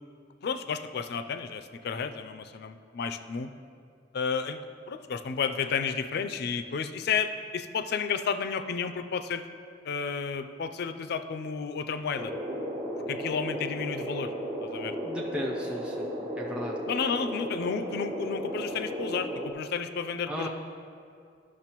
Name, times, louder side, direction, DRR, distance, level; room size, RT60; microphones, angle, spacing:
voice 1, 0.4-3.5 4.1-4.6 4.9-9.4 9.8-12.3 13.1-14.3 14.6-14.9 16.9-20.5, left 6 dB, 60° left, 10 dB, 0.4 m, -32 dB
sound 1, 12.1-19.5, equal, 30° right, 1.0 m, -34 dB
voice 2, 15.0-16.1 16.4-16.8 20.3-20.5, equal, 5° right, -4 dB, 0.5 m, -35 dB
12.5 x 6.3 x 2.9 m, 2.3 s
head